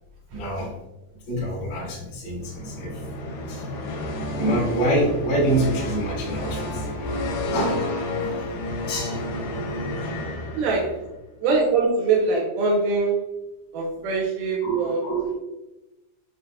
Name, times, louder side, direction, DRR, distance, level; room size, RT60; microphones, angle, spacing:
voice 1, 0.3-0.8 1.3-3.0 3.5-3.6 4.2-8.5 8.9-9.2 14.6-15.4, right 1 dB, 50° left, -8 dB, 1.5 m, -26 dB
sound 1, 2.4-11.1, left 1 dB, 80° left, 2.3 m, -30 dB
voice 2, 10.6-11.0 11.4-13.3 13.7-15.1, right 4 dB, 85° right, -3 dB, 1.8 m, -23 dB
6.5 x 2.3 x 2.3 m, 1.0 s
omnidirectional pair, 4.4 m